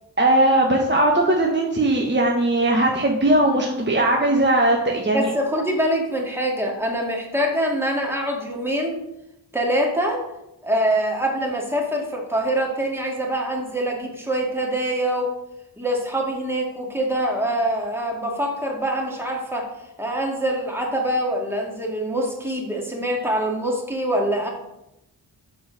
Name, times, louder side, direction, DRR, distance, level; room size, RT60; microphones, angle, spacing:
voice 1, 0.2-5.3, right 1 dB, 25° right, 0 dB, 1.0 m, -19 dB
voice 2, 5.1-9.0 9.5-10.2 10.6-15.3 15.8-19.7 20.0-24.5, right 1 dB, 5° right, -1 dB, 1.9 m, -24 dB
6.8 x 4.3 x 6.2 m, 0.87 s
wide cardioid pair, 70°, 43 cm